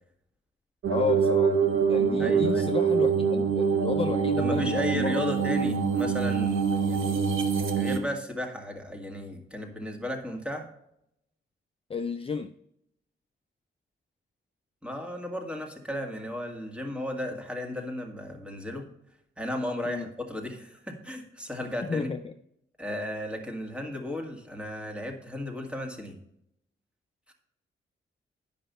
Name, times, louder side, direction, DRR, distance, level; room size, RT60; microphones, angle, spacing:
sound 1, 0.8-8.0, right 6 dB, 80° right, 1.0 m, -25 dB
voice 1, 0.9-1.6 1.9-5.2 11.9-12.5 19.9-20.0 21.9-22.3, left 5 dB, 30° left, 7 dB, 0.4 m, -32 dB
voice 2, 2.2-2.7 4.4-7.2 7.7-10.7 14.8-18.9 19.4-22.2 22.8-26.2 27.3-27.4, left 1 dB, 5° right, 2 dB, 1.9 m, -34 dB
10.0 x 5.5 x 5.5 m, 0.76 s
cardioid pair, 90°, 20 cm